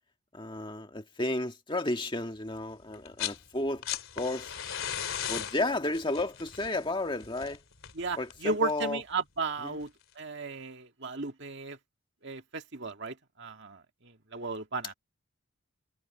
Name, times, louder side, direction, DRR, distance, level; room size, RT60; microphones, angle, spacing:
voice 1, 0.3-3.8 4.2-4.5 5.3-7.6 8.2-9.0 9.6-9.8, left 2 dB, 25° left, 1.8 m, -32 dB
sound 1, 2.9-3.4 3.7-8.5 9.8-9.9, left 9 dB, 70° left, 3.1 m, -37 dB
voice 2, 7.9-9.9 10.2-11.8 12.2-14.9, right 3 dB, 55° right, 2.1 m, -35 dB
head